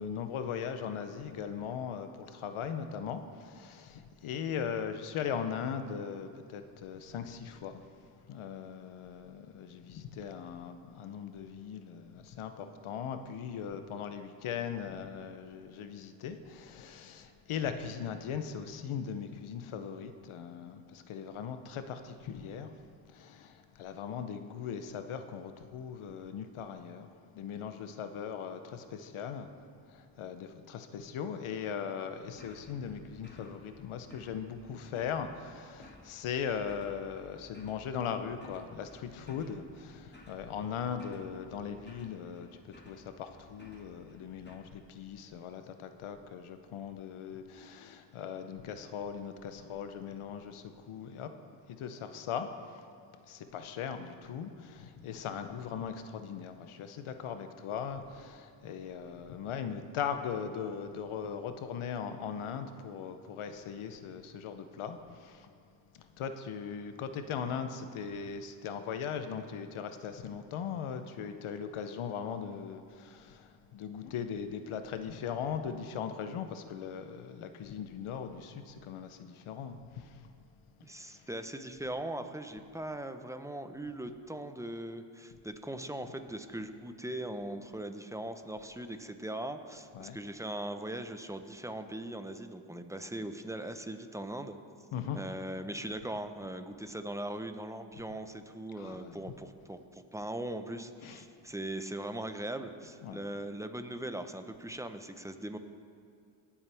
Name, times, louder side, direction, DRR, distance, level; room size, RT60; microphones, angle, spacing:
voice 1, 0.0-51.3 51.7-52.9 53.2-65.5 65.9-80.3 80.8-81.3 89.9-90.2 94.9-95.2 98.8-99.3 101.0-101.2 103.0-103.2, left 7 dB, 85° left, 8 dB, 0.8 m, -39 dB
sound 1, 32.3-44.6, left 1 dB, 20° left, 2.0 m, -57 dB
voice 2, 80.8-94.6 95.1-105.6, right 1 dB, 5° right, 8 dB, 0.9 m, -40 dB
18.5 x 7.2 x 3.5 m, 2.4 s
supercardioid pair, 45°, 48 cm